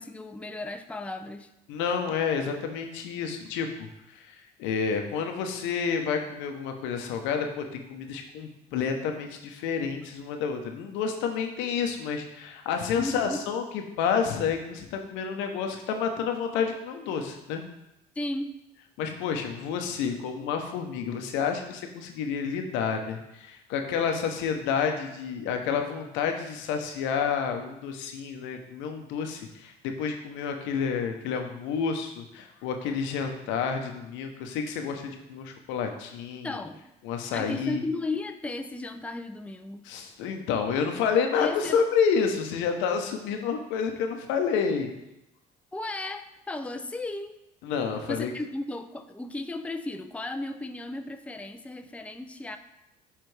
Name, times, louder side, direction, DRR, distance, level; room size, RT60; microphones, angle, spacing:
voice 1, 0.0-1.5 12.9-13.4 18.2-18.6 36.4-36.8 37.3-39.9 41.4-41.8 45.7-47.4 48.1-52.6, left 2 dB, 5° left, 7 dB, 0.5 m, -35 dB
voice 2, 1.7-17.6 19.0-36.6 37.0-37.8 39.8-44.9 47.6-48.3, left 6 dB, 80° left, 5 dB, 0.8 m, -29 dB
9.2 x 3.4 x 3.3 m, 0.90 s
supercardioid pair, 70°, 19 cm